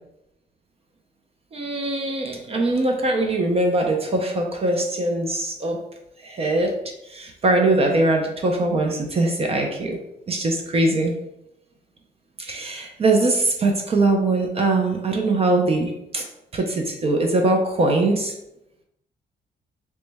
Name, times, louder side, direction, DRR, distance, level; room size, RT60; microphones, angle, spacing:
voice 1, 1.5-5.8 6.2-6.7 7.0-10.0 10.3-11.1 12.4-16.3 16.5-18.3, right 2 dB, 35° right, 2 dB, 0.5 m, -22 dB
3.1 x 3.1 x 3.3 m, 0.85 s
cardioid pair, 125°, 17 cm